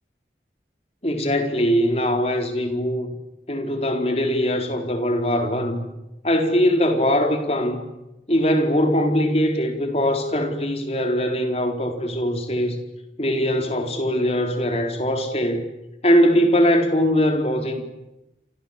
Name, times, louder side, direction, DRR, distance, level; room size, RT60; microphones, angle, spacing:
voice 1, 1.0-3.1 3.5-5.8 6.2-7.8 8.3-12.8 13.2-15.6 16.0-17.8, equal, 35° left, 4.3 m, -21 dB
28.5 x 27.0 x 7.5 m
head